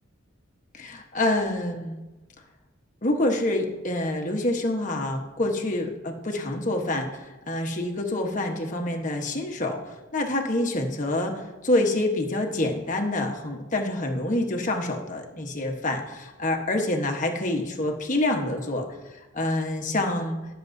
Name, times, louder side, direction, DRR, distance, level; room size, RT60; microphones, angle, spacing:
voice 1, 0.7-2.0 3.0-20.4, left 1 dB, 40° left, 2 dB, 1.2 m, -27 dB
20.0 x 6.9 x 2.7 m, 1.1 s
head